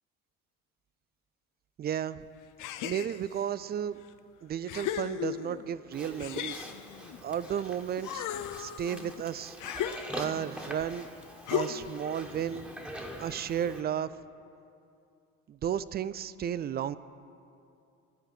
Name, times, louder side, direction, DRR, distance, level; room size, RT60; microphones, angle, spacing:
voice 1, 1.8-2.2 2.8-4.0 4.4-6.7 7.2-8.3 8.6-9.6 10.1-11.1 11.5-12.7 13.2-14.1 15.5-17.0, right 9 dB, 25° right, 16 dB, 0.3 m, -33 dB
sound 1, 2.6-3.5 4.1-4.2 4.7-5.7 6.2-7.6 8.0-10.5 11.5-12.0, left 10 dB, 50° left, 0.6 m, -36 dB
Livestock farm animals working animals, 5.9-13.8, equal, 5° right, 1.5 m, -44 dB
14.0 x 4.8 x 7.7 m, 2.5 s
hypercardioid pair, 55°, 39 cm